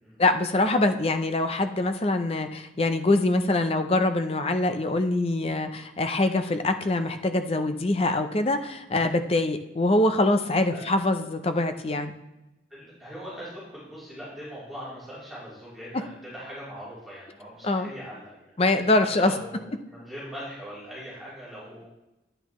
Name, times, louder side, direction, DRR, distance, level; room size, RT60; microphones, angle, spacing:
voice 1, 0.2-12.1 17.6-17.9 18.6-19.3, left 2 dB, 30° left, 8 dB, 0.5 m, -24 dB
voice 2, 12.7-18.5 19.0-21.9, equal, ahead, -10 dB, 3.3 m, -41 dB
10.5 x 8.9 x 3.1 m, 0.97 s
head